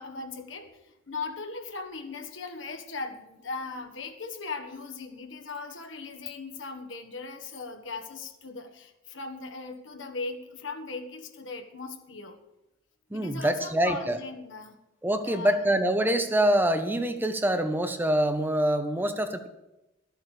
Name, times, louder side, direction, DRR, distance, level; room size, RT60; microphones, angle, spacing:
voice 1, 0.0-12.4 13.1-14.8 15.2-15.6, left 4 dB, 75° left, 5 dB, 1.5 m, -38 dB
voice 2, 13.1-14.2 15.0-19.5, right 1 dB, 10° right, 8 dB, 0.8 m, -25 dB
13.0 x 8.1 x 6.6 m, 0.94 s
head